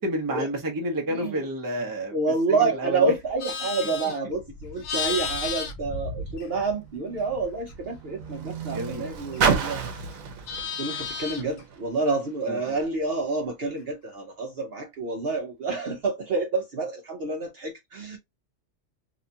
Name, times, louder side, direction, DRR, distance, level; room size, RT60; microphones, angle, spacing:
voice 1, 0.0-2.1 2.5-3.1 8.7-9.1 12.5-12.8, right 1 dB, 20° right, 0.6 m, -29 dB
voice 2, 1.1-1.5 2.1-10.1 10.8-18.2, right 3 dB, 55° right, 0.7 m, -28 dB
Livestock farm animals working animals, 3.1-6.9 7.2-9.7 10.0-11.6, left 5 dB, 75° left, 1.0 m, -34 dB
Car, 5.8-12.4 13.2-13.3, right 6 dB, 80° right, 1.1 m, -32 dB
2.9 x 2.3 x 2.6 m
omnidirectional pair, 1.4 m